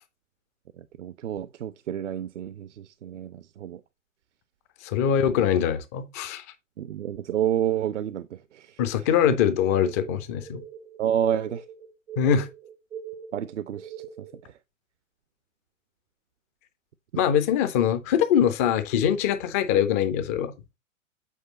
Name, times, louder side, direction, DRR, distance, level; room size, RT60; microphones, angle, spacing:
voice 1, 0.8-3.8 6.8-9.4 11.0-11.7 13.3-14.6, right 10 dB, 65° right, 0.6 m, -30 dB
voice 2, 4.8-6.4 8.8-10.6 12.2-12.5 17.2-20.5, left 9 dB, 15° left, 0.3 m, -23 dB
sound 1, 9.6-14.4, right 8 dB, 85° right, 1.3 m, -41 dB
8.3 x 4.7 x 3.9 m
figure-of-eight pair, 105°, 40 cm